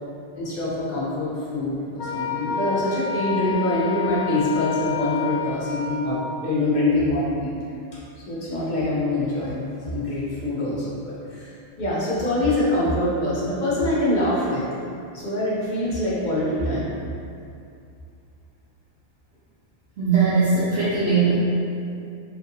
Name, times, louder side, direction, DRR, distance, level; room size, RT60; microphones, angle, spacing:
voice 1, 0.3-7.5 8.3-9.6 9.9-11.5 11.8-14.6 15.1-16.9, left 1 dB, 50° left, -8 dB, 0.7 m, -24 dB
Wind instrument woodwind instrument, 2.0-6.4, left 6 dB, 85° left, 0.9 m, -29 dB
voice 2, 20.0-21.3, right 4 dB, 70° right, -11 dB, 0.9 m, -20 dB
2.7 x 2.5 x 2.6 m, 2.6 s
omnidirectional pair, 1.2 m